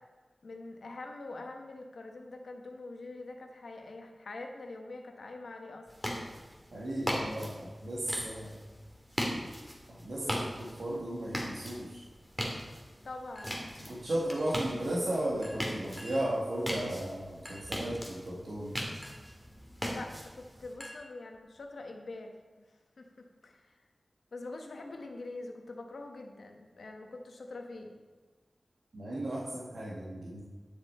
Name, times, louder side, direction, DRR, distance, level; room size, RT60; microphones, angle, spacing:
voice 1, 0.4-5.9 10.2-10.6 13.0-13.5 19.9-22.6 23.0-23.1 23.4-23.8 24.3-27.9, left 2 dB, 90° left, 3 dB, 1.1 m, -44 dB
sound 1, 5.9-20.7, equal, 5° right, 1.8 m, -39 dB
voice 2, 6.7-8.6 9.9-12.0 13.8-18.7 28.9-30.4, right 1 dB, 80° right, -6 dB, 1.6 m, -35 dB
Chink clink, 13.3-13.9 14.3-14.7 15.4-16.4 17.4-17.8 19.0-19.4 20.8-21.6, equal, 15° left, 1.8 m, -49 dB
9.9 x 6.5 x 4.3 m, 1.3 s
wide cardioid pair, 75°, 0 cm